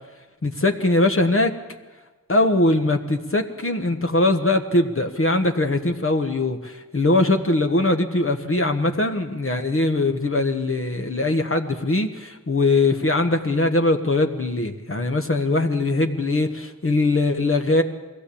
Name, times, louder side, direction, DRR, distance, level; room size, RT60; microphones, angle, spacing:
voice 1, 0.4-1.5 2.3-17.8, left 2 dB, 40° left, 5 dB, 1.4 m, -21 dB
22.0 x 16.0 x 8.6 m, 1.3 s
wide cardioid pair, 70°, 33 cm